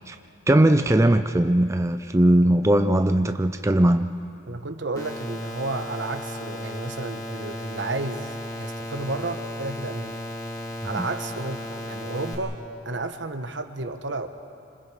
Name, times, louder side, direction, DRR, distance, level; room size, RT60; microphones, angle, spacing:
voice 1, 0.5-4.1 10.9-11.1, right 1 dB, 15° right, 8 dB, 0.5 m, -19 dB
voice 2, 4.5-8.3 8.6-10.1 10.8-12.6 12.8-14.3, right 2 dB, 75° right, 8 dB, 1.2 m, -32 dB
sound 1, 5.0-12.4, left 1 dB, 20° left, 2.4 m, -35 dB
27.0 x 26.0 x 4.9 m, 2.6 s
head